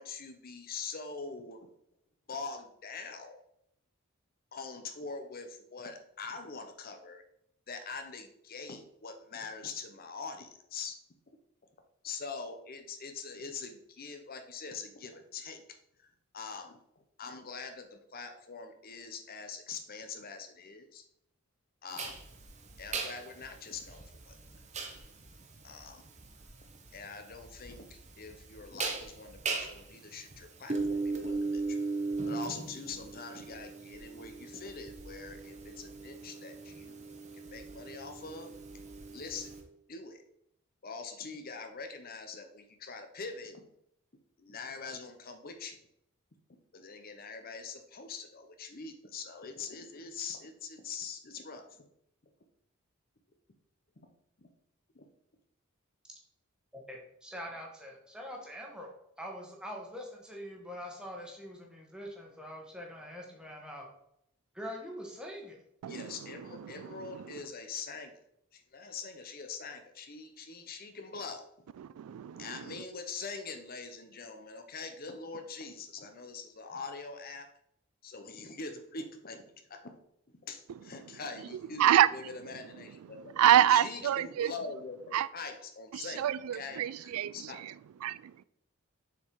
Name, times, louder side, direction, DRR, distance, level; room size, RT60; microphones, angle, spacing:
voice 1, 0.0-1.7 2.3-3.4 4.5-7.2 7.7-11.0 12.0-15.6 16.0-16.1 16.3-16.8 17.2-21.0 21.8-22.1 22.8-24.4 25.6-26.0 26.9-31.9 32.2-37.1 37.3-38.5 39.1-39.5 39.9-40.2 40.8-43.6 44.4-45.8 46.7-51.7 54.0-54.1 54.9-55.1 65.9-68.1 68.5-71.4 72.4-77.5 78.0-79.9 80.5-83.4 83.7-86.2 86.5-86.8 87.3-87.6, left 4 dB, 45° left, 6 dB, 0.8 m, -43 dB
sound 1, 22.0-39.6, right 3 dB, 35° right, 0.9 m, -39 dB
voice 2, 56.7-58.9 59.2-63.9 64.5-65.6, equal, 5° right, 0 dB, 1.4 m, -44 dB
voice 3, 66.6-67.4 71.8-72.8 81.8-82.1 83.1-84.5 85.1-85.3 85.9-87.7 88.0-88.4, right 11 dB, 90° right, 17 dB, 0.3 m, -27 dB
6.7 x 4.5 x 4.7 m, 0.74 s
head